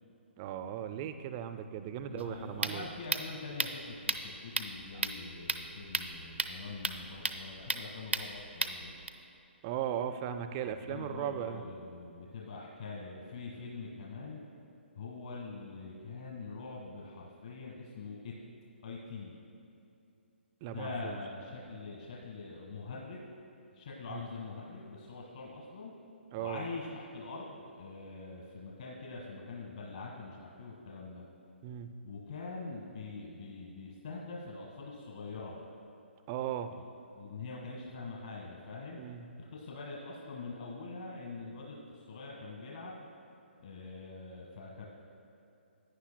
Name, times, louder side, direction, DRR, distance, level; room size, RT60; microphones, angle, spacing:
voice 1, 0.4-2.9 4.9-5.0 9.6-11.6 20.6-21.2 24.1-24.2 26.3-26.7 31.6-31.9 36.3-36.7 39.0-39.2, right 10 dB, 25° right, 9 dB, 0.4 m, -37 dB
voice 2, 2.0-9.0 10.6-14.4 14.9-18.3 18.8-19.3 20.7-23.3 23.7-25.9 26.4-31.2 32.0-35.6 36.7-36.8 37.1-39.0 39.4-43.1 43.6-44.9, left 3 dB, 50° left, -3 dB, 1.5 m, -44 dB
sound 1, 2.2-9.1, right 3 dB, 85° right, 0.7 m, -36 dB
16.5 x 9.8 x 2.2 m, 2.8 s
figure-of-eight pair, 135°, 6 cm